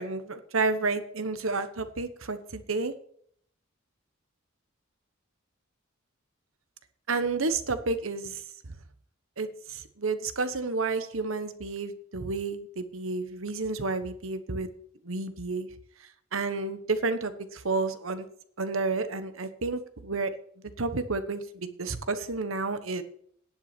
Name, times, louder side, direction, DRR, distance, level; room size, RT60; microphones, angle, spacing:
voice 1, 0.0-2.9 7.1-8.4 9.4-14.7 15.0-15.7 16.3-18.3 18.6-20.3 20.8-23.0, right 3 dB, 70° right, 11 dB, 1.2 m, -30 dB
10.5 x 8.0 x 6.9 m, 0.63 s
head